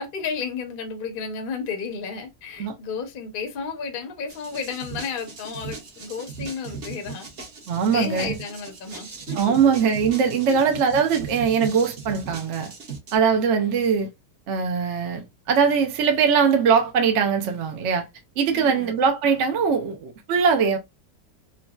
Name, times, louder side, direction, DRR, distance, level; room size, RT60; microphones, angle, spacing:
voice 1, 0.0-7.3 7.9-9.5 10.5-10.8 18.5-18.9, left 5 dB, 50° left, 0.6 m, -32 dB
sound 1, 4.3-13.2, right 5 dB, 45° right, 1.2 m, -38 dB
voice 2, 7.7-8.3 9.4-12.7 13.1-14.1 14.5-18.1 18.4-20.8, right 6 dB, 65° right, 0.7 m, -21 dB
3.8 x 2.1 x 2.2 m
omnidirectional pair, 1.9 m